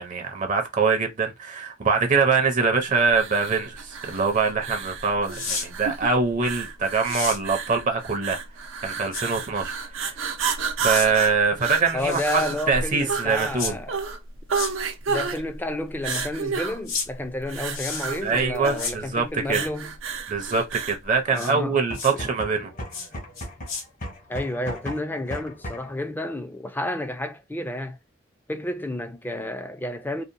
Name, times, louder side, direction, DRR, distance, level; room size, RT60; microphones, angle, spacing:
voice 1, 0.0-8.4 8.8-10.3 10.8-12.4 12.7-13.8 18.2-19.7 20.3-22.7, right 5 dB, 40° right, 0.5 m, -24 dB
sound 1, 3.1-21.0, right 5 dB, 90° right, 0.6 m, -31 dB
sound 2, 5.3-5.7 7.0-7.4 9.1-9.2 10.9-11.1 12.0-12.6 13.6-13.7 14.5-14.7 16.0-16.3 16.9-17.1 17.7-18.2 18.8-19.0 21.3-21.5 21.9-22.1 22.9-23.1 23.4-23.8, left 4 dB, 85° left, 1.0 m, -32 dB
voice 2, 11.9-14.0 15.1-19.9 21.3-21.8 22.1-22.2 24.3-28.0 28.5-30.2, left 1 dB, 10° left, 0.4 m, -31 dB
sound 3, 21.9-26.0, equal, 40° left, 0.7 m, -36 dB
2.8 x 2.0 x 2.5 m
head